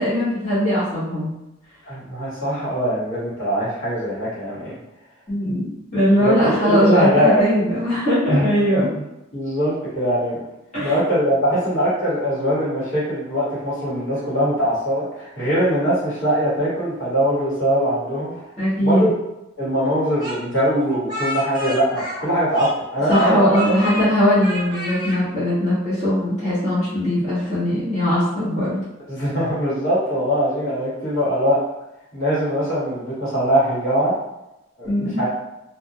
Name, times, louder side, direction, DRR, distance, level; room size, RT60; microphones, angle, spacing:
voice 1, 0.0-1.3 5.3-8.9 10.7-11.0 18.6-19.1 23.1-28.8 34.8-35.2, equal, 35° left, -13 dB, 1.0 m, -20 dB
voice 2, 1.9-4.7 6.2-7.5 8.3-8.8 9.3-10.4 10.8-18.4 18.8-19.1 19.6-23.6 29.1-31.6 32.1-34.1 34.8-35.3, equal, 65° left, -9 dB, 1.3 m, -21 dB
Speech, 20.2-22.8 23.1-24.1 24.4-25.2, equal, 20° right, 1.0 m, -30 dB
2.3 x 2.1 x 2.7 m, 0.91 s
head